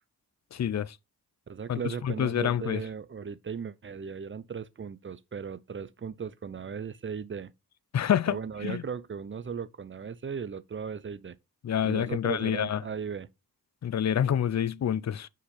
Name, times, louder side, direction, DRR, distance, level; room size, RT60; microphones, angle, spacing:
voice 1, 0.5-1.0 1.7-2.8 7.9-8.4 8.6-8.8 11.6-12.8 13.8-15.3, left 9 dB, 45° left, 0.4 m, -27 dB
voice 2, 1.5-7.5 8.3-11.4 11.8-13.3, right 6 dB, 30° right, 0.5 m, -37 dB
4.9 x 4.3 x 5.4 m
wide cardioid pair, 90°, 38 cm